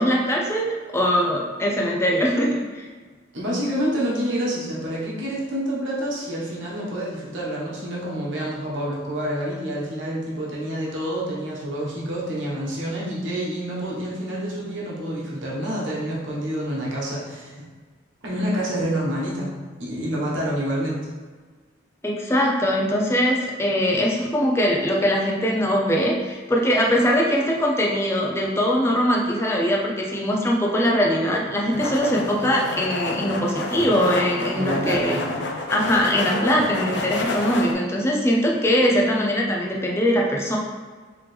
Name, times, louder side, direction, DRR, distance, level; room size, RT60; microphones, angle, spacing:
voice 1, 0.0-2.9 22.0-35.1 35.7-40.6, equal, 15° left, -2 dB, 0.5 m, -21 dB
voice 2, 3.3-17.6 18.2-21.0 34.5-35.2, equal, 75° right, -5 dB, 1.3 m, -28 dB
sound 1, 31.7-37.7, left 2 dB, 60° left, 0.5 m, -29 dB
4.6 x 3.4 x 3.3 m, 1.5 s
head